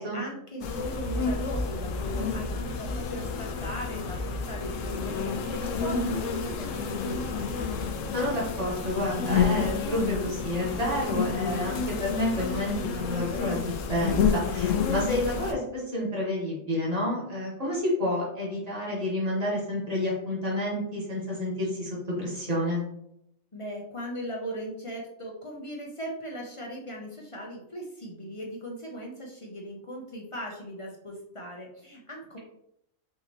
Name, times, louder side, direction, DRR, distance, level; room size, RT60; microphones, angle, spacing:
voice 1, 0.0-7.4 23.5-32.4, equal, 35° left, -1 dB, 0.5 m, -38 dB
sound 1, 0.6-15.5, left 5 dB, 75° left, 0.9 m, -30 dB
voice 2, 8.1-22.8, left 1 dB, 30° right, -5 dB, 1.6 m, -29 dB
5.5 x 2.9 x 2.9 m, 0.77 s
omnidirectional pair, 1.4 m